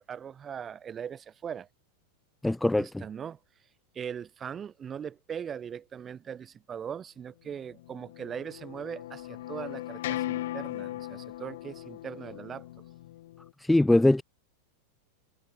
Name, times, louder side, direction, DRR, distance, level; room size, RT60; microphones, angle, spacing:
voice 1, 0.0-1.7 2.8-3.4 3.9-12.8, right 8 dB, 25° right, 5.9 m, -40 dB
voice 2, 2.4-3.0 13.6-14.2, left 1 dB, 5° left, 0.4 m, -22 dB
sound 1, 7.7-13.5, left 15 dB, 55° left, 4.7 m, -38 dB
figure-of-eight pair, 90°, 0 cm